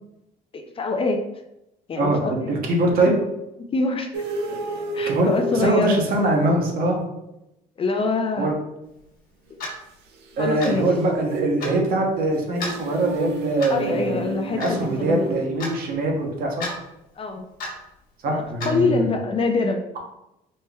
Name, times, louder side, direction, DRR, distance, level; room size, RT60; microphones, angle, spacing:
voice 1, 0.5-1.2 1.9-2.6 3.1-3.2 3.7-4.2 4.9-6.0 7.8-8.5 10.4-10.9 13.7-15.4 17.2-17.4 18.2-20.0, left 3 dB, 35° left, 5 dB, 0.4 m, -25 dB
voice 2, 2.0-3.1 5.1-5.3 5.6-7.0 8.4-8.5 10.4-14.2 14.5-16.7 18.2-19.1, right 2 dB, 60° right, 0 dB, 1.0 m, -22 dB
sound 1, 4.1-6.8 10.3-15.5, right 2 dB, 80° right, 0.6 m, -31 dB
Clock, 9.6-9.8 10.6-10.8 11.6-11.8 12.6-12.8 13.6-13.8 14.6-14.8 15.6-15.8 16.6-16.7 17.6-17.8 18.6-18.7, left 2 dB, 60° left, 1.2 m, -31 dB
4.3 x 2.1 x 3.4 m, 0.87 s
cardioid pair, 110°, 17 cm